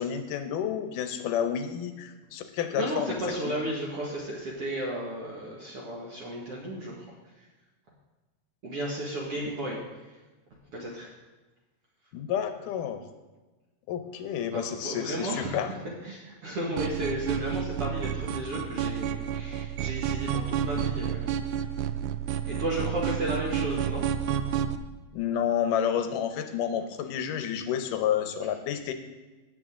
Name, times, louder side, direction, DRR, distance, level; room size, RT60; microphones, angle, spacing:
voice 1, 0.0-3.1 3.4-3.6 9.4-9.5 12.1-13.0 13.9-15.7 25.1-28.9, left 9 dB, 75° left, 8 dB, 2.3 m, -30 dB
voice 2, 2.7-7.5 8.6-10.2 10.7-11.1 14.5-15.7 16.0-21.4 22.5-24.0, right 1 dB, 50° right, -4 dB, 2.3 m, -34 dB
sound 1, 16.8-24.8, right 9 dB, 80° right, 1.9 m, -30 dB
17.5 x 7.7 x 3.7 m, 1.2 s
omnidirectional pair, 3.9 m